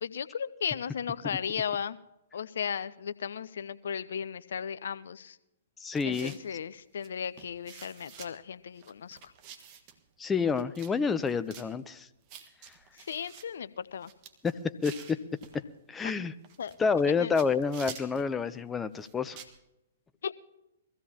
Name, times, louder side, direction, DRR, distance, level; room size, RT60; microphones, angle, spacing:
voice 1, 0.0-2.0 2.3-5.4 6.0-9.3 12.9-14.1 16.0-16.1 16.6-16.7 17.2-17.3 20.2-20.3, left 7 dB, 65° left, 15 dB, 0.5 m, -35 dB
voice 2, 5.8-6.3 10.2-12.1 14.4-14.5 14.8-15.2 15.9-16.3 16.8-19.4, left 5 dB, 15° left, 11 dB, 0.6 m, -28 dB
sound 1, 5.9-6.5 7.0-7.1 7.4-8.3 8.8-10.0 10.6-10.9 11.2-11.7 12.3-13.5 13.9-15.6 16.4-17.1 17.4-18.3 18.9-19.6, right 8 dB, 40° right, 1.5 m, -48 dB
22.5 x 15.5 x 2.9 m, 0.90 s
figure-of-eight pair, 120°, 0 cm